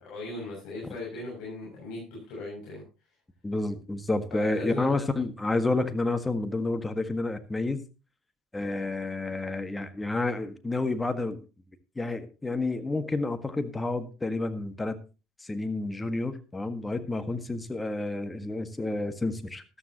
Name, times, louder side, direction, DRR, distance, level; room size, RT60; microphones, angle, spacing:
voice 1, 0.0-2.8 4.3-4.9, left 2 dB, 60° left, -4 dB, 6.9 m, -38 dB
voice 2, 3.4-7.8 8.5-11.4 11.9-15.0 15.4-19.6, left 2 dB, 15° left, 9 dB, 1.6 m, -30 dB
13.5 x 12.5 x 3.0 m, 0.31 s
hypercardioid pair, 65°, 0 cm